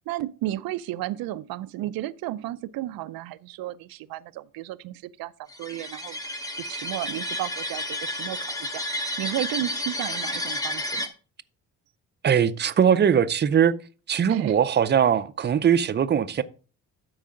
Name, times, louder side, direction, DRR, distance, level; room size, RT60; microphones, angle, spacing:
voice 1, 0.1-6.2 6.6-11.1 14.3-14.6, right 15 dB, 80° right, 0.5 m, -33 dB
sound 1, 5.5-11.1, left 1 dB, 10° left, 1.0 m, -31 dB
voice 2, 12.2-13.7 14.1-16.4, right 8 dB, 30° right, 0.5 m, -21 dB
12.5 x 4.8 x 3.7 m
cardioid pair, 105°, 34 cm